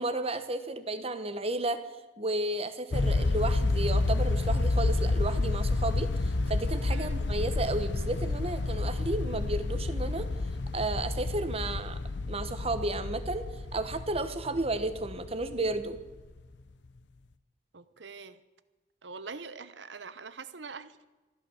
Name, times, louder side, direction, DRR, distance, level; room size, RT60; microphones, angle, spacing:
voice 1, 0.0-1.8 2.2-10.3 10.7-12.0 12.3-13.5 13.7-16.0, right 2 dB, 35° right, 10 dB, 1.1 m, -32 dB
sound 1, 2.9-16.2, left 2 dB, 75° left, 0.7 m, -30 dB
voice 2, 6.9-7.2 17.7-18.4 19.0-21.0, right 4 dB, 75° right, 13 dB, 0.9 m, -44 dB
14.5 x 12.0 x 7.1 m, 1.2 s
head